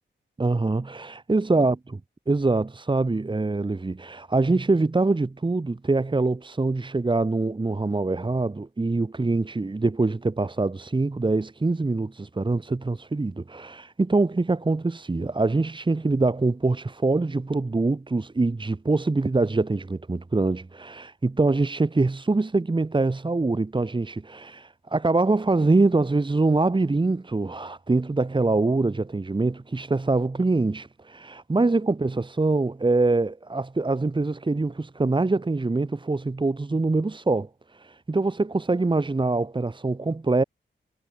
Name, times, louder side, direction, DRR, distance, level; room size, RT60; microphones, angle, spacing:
voice 1, 0.4-1.8 2.3-40.4, right 3 dB, 25° right, 2.4 m, -24 dB
wide cardioid pair, 155°, 20 cm